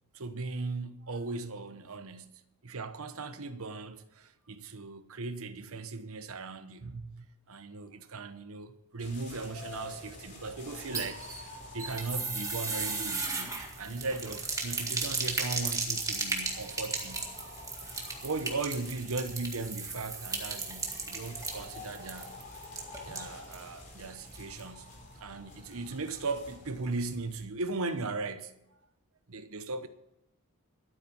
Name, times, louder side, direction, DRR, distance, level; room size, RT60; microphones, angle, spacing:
voice 1, 0.1-17.3 18.2-22.3 23.0-24.9 25.2-28.5 29.3-29.9, right 3 dB, 65° right, 1.0 m, -38 dB
sound 1, 9.0-27.5, left 2 dB, 35° left, 4.1 m, -49 dB
sound 2, 10.7-23.7 24.0-24.1 24.3-24.4, right 3 dB, 15° right, 1.9 m, -36 dB
12.5 x 9.2 x 7.0 m
head